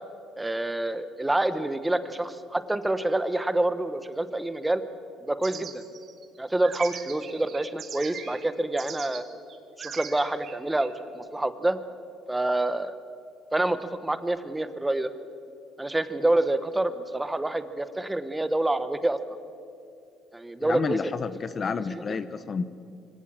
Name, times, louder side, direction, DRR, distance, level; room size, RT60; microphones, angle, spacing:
voice 1, 0.4-4.8 5.2-5.8 6.4-9.2 9.8-11.8 12.3-12.9 13.5-13.8 14.0-15.1 15.8-19.4 20.3-21.0 21.9-22.0, right 2 dB, 10° right, 12 dB, 1.0 m, -27 dB
sound 1, 5.4-8.4 8.8-9.2 9.5-10.9, right 7 dB, 50° right, 2.0 m, -40 dB
voice 2, 20.6-22.7, left 5 dB, 35° left, 13 dB, 0.8 m, -30 dB
24.5 x 17.5 x 7.5 m, 2.5 s
cardioid pair, 115°, 0 cm